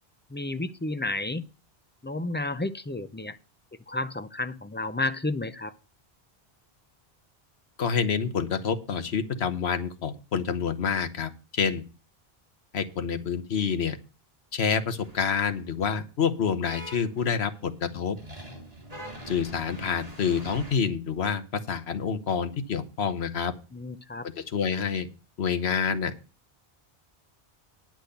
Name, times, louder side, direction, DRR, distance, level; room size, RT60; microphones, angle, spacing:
voice 1, 0.3-1.5 2.0-3.4 3.9-5.7 23.7-24.3, left 2 dB, 20° left, 11 dB, 0.3 m, -31 dB
voice 2, 7.8-11.8 12.7-14.0 14.5-18.2 19.3-23.5 24.4-25.1 25.4-26.1, left 6 dB, 80° left, 10 dB, 1.3 m, -28 dB
sound 1, 15.0-15.7 16.6-17.6 18.2-20.8, equal, 35° right, 2.8 m, -43 dB
10.0 x 6.1 x 6.8 m, 0.33 s
omnidirectional pair, 1.1 m